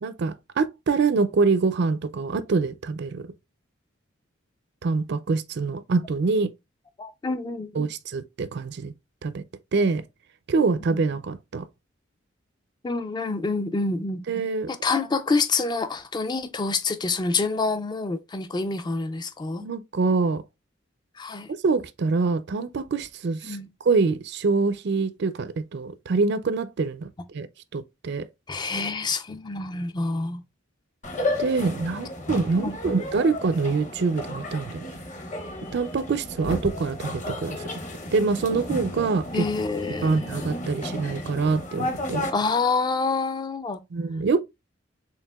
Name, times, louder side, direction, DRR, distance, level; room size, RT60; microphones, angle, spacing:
voice 1, 0.0-3.3 4.8-6.5 7.7-8.9 9.2-9.4 9.7-10.0 10.5-11.6 14.3-14.7 19.6-20.4 21.6-23.6 23.8-27.5 27.7-28.3 31.4-34.8 35.7-37.6 38.1-39.5 40.0-42.3 43.9-44.4, right 4 dB, 55° right, 0.4 m, -25 dB
voice 2, 7.0-7.8 12.8-14.2 14.7-19.6 21.2-21.5 23.4-23.7 28.5-30.4 32.6-33.0 39.3-40.2 42.3-43.8, left 3 dB, 20° left, 0.3 m, -27 dB
sound 1, 31.0-42.3, left 1 dB, 35° left, 0.8 m, -33 dB
4.6 x 3.5 x 2.2 m
head